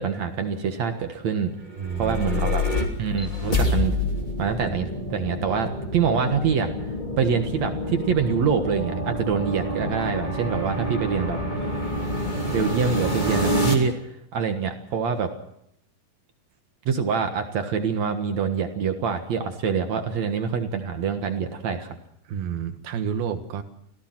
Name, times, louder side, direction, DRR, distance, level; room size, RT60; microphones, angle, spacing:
voice 1, 0.0-1.5 2.0-2.6 3.0-4.0 4.4-6.7 7.2-11.4 12.5-13.9 14.3-15.3 16.9-22.0, right 6 dB, 55° right, 6 dB, 2.3 m, -25 dB
sound 1, 1.7-13.7, left 1 dB, 15° left, 2.6 m, -27 dB
voice 2, 1.8-2.5 22.3-23.6, right 7 dB, 75° right, 8 dB, 3.3 m, -30 dB
26.5 x 16.5 x 6.0 m, 0.74 s
omnidirectional pair, 4.3 m